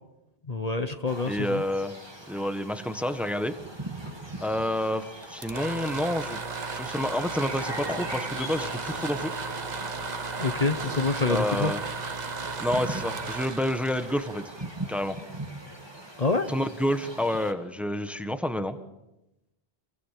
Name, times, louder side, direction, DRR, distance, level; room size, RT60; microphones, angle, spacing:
voice 1, 0.5-1.6 10.4-11.7 16.2-16.5, left 3 dB, 40° left, 8 dB, 1.2 m, -27 dB
sound 1, 1.1-17.5, right 1 dB, 25° right, 2.8 m, -41 dB
voice 2, 1.3-1.9 2.3-3.5 4.4-6.4 6.7-9.4 11.3-11.8 12.6-14.5 14.9-15.2 16.5-18.8, left 1 dB, ahead, 8 dB, 1.4 m, -29 dB
sound 2, 5.2-15.0, right 4 dB, 45° right, 1.2 m, -35 dB
27.5 x 23.5 x 7.6 m, 0.94 s
omnidirectional pair, 1.1 m